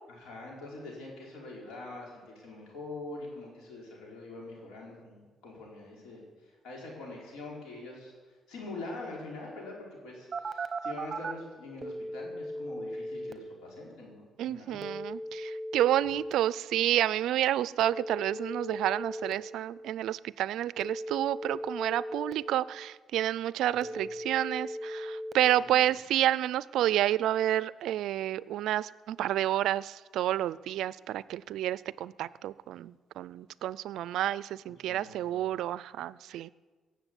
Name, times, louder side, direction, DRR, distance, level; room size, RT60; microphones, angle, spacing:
voice 1, 0.1-8.1 8.5-14.8 23.7-23.9 25.6-25.8 34.8-35.4, left 2 dB, 90° left, -2 dB, 4.9 m, -44 dB
Telephone, 10.3-11.3 11.8-13.3 14.8-16.3 17.8-19.3 20.8-22.3 23.8-25.3, right 1 dB, 35° right, 1.1 m, -37 dB
voice 2, 14.4-36.5, right 12 dB, 85° right, 19 dB, 0.4 m, -29 dB
17.5 x 7.5 x 8.3 m, 1.4 s
cardioid pair, 90°, 0 cm